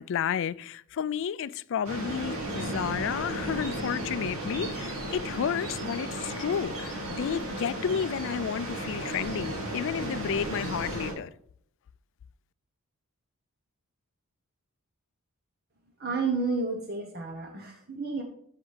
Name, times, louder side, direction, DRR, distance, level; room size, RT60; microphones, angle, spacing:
voice 1, 0.0-11.3, left 8 dB, 55° left, 0.3 m, -31 dB
sound 1, 1.8-11.1, right 1 dB, 70° right, 2.5 m, -34 dB
voice 2, 16.0-18.2, right 4 dB, 45° right, 0.9 m, -31 dB
13.0 x 5.9 x 3.3 m
head